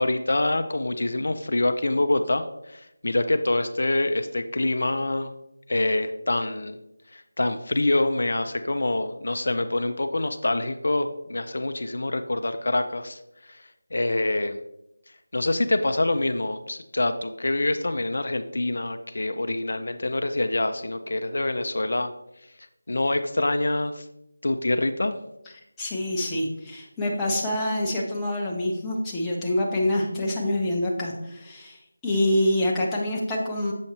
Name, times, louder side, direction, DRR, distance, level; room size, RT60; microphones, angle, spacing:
voice 1, 0.0-5.3 5.7-6.8 7.1-13.2 13.5-13.6 13.9-14.6 15.3-22.1 22.9-24.1 24.4-25.2, left 2 dB, 65° left, 8 dB, 0.4 m, -25 dB
voice 2, 25.8-33.7, left 1 dB, 5° left, -5 dB, 0.7 m, -26 dB
7.1 x 5.2 x 2.9 m, 0.85 s
figure-of-eight pair, 170°, 0 cm